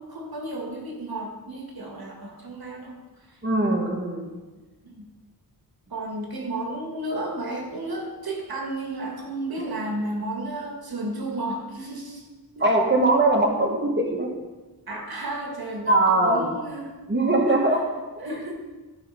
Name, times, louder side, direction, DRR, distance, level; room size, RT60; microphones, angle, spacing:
voice 1, 0.0-3.4 4.8-5.1 5.9-12.3 12.5-12.7 14.9-17.0 17.5-17.6 18.2-18.5, right 1 dB, 70° right, 1 dB, 1.8 m, -33 dB
voice 2, 3.4-4.2 12.6-14.3 15.9-16.5 17.1-17.8 18.2-18.3, right 2 dB, 30° right, 0 dB, 2.0 m, -21 dB
14.0 x 5.0 x 5.5 m, 1.2 s
cardioid pair, 65°, 38 cm